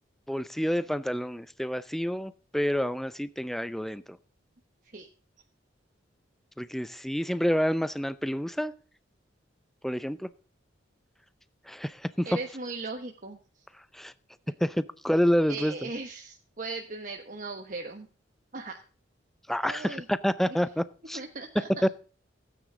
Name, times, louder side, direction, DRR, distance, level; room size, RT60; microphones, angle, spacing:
voice 1, 0.3-4.0 6.6-8.7 9.8-10.3 11.7-12.3 13.9-14.1 14.6-15.7 19.5-21.2 21.6-21.9, equal, ahead, 14 dB, 0.5 m, -28 dB
voice 2, 12.2-13.4 15.5-18.1 18.5-18.8 19.6-20.0 21.1-21.7, right 3 dB, 45° right, 4 dB, 1.2 m, -38 dB
16.0 x 9.3 x 3.8 m, 0.40 s
head